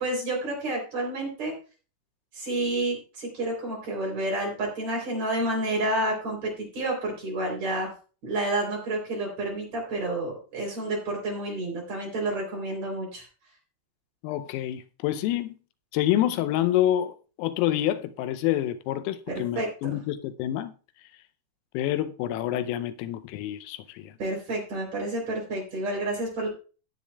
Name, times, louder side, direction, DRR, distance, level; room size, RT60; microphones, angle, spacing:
voice 1, 0.0-1.5 2.3-7.9 8.2-13.3 19.3-19.7 24.2-26.5, right 2 dB, 35° right, 4.3 m, -29 dB
voice 2, 14.2-15.5 15.9-20.7 21.7-24.1, left 12 dB, 85° left, 3.4 m, -27 dB
17.5 x 8.3 x 2.3 m
omnidirectional pair, 5.9 m